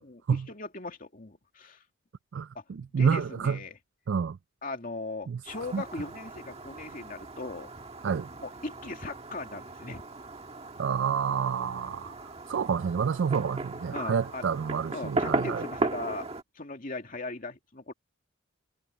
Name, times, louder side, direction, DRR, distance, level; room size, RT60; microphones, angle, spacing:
voice 1, 0.0-1.8 2.5-2.6 2.9-3.8 4.6-7.7 8.4-10.0 13.9-14.5 14.9-16.3 16.6-17.9, left 2 dB, 40° left, 2.5 m, -38 dB
voice 2, 2.9-3.6 4.1-4.4 5.3-5.4 5.7-5.8 8.0-8.3 10.8-12.1 12.5-15.7, right 6 dB, 60° right, 0.4 m, -28 dB
Fireworks, 5.5-16.4, right 2 dB, 30° right, 1.6 m, -37 dB
head